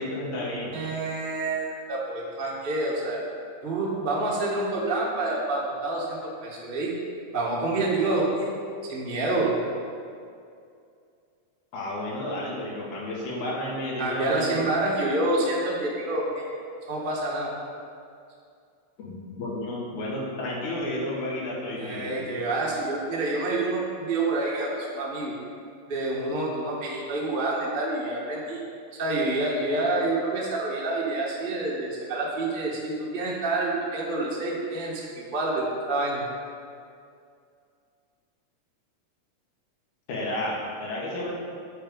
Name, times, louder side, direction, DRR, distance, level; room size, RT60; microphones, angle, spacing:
voice 1, 0.0-0.7 11.7-14.5 19.0-19.1 19.4-22.1 40.1-41.3, left 1 dB, 75° left, -4 dB, 3.1 m, -31 dB
voice 2, 0.7-3.2 3.6-6.9 7.3-8.5 8.9-9.5 14.0-16.5 16.9-17.5 21.8-25.3 25.9-28.6 28.9-36.2, right 2 dB, 45° right, -4 dB, 0.6 m, -28 dB
8.8 x 5.8 x 5.2 m, 2.3 s
omnidirectional pair, 3.6 m